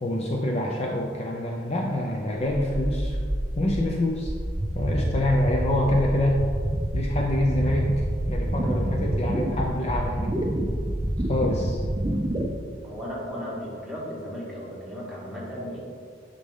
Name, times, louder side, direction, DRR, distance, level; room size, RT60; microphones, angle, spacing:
voice 1, 0.0-3.2 3.6-4.3 4.7-6.4 6.9-7.9 8.3-10.4 11.2-11.8, left 1 dB, 35° left, -1 dB, 0.5 m, -26 dB
sound 1, 2.7-12.5, right 1 dB, 20° right, 0.5 m, -27 dB
voice 2, 12.8-15.8, equal, ahead, -7 dB, 1.7 m, -35 dB
9.5 x 4.1 x 3.7 m, 2.2 s
head